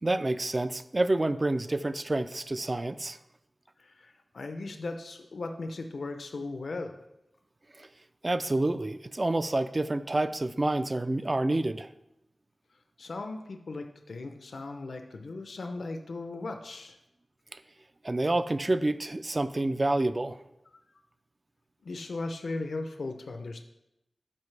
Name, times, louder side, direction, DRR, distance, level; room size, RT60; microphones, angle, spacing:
voice 1, 0.0-3.2 7.8-7.9 8.2-11.9 17.5-17.6 18.0-20.4, right 2 dB, 30° right, 12 dB, 0.3 m, -28 dB
voice 2, 3.8-7.0 13.0-17.0 21.8-23.6, left 3 dB, 80° left, 5 dB, 0.6 m, -37 dB
12.0 x 4.5 x 3.3 m, 0.89 s
wide cardioid pair, 90°, 0 cm